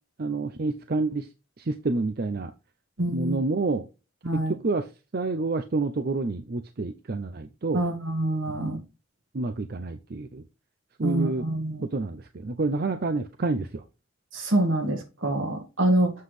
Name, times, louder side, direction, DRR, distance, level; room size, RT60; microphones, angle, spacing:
voice 1, 0.2-1.3 1.6-2.5 3.1-3.9 4.3-4.9 5.1-7.8 8.7-8.8 9.3-10.4 11.0-13.8, right 3 dB, 50° right, 8 dB, 0.6 m, -28 dB
voice 2, 3.0-3.4 4.2-4.5 7.7-8.8 11.0-11.8 14.3-16.1, right 1 dB, 80° right, 5 dB, 1.9 m, -26 dB
7.5 x 6.0 x 3.2 m, 0.29 s
head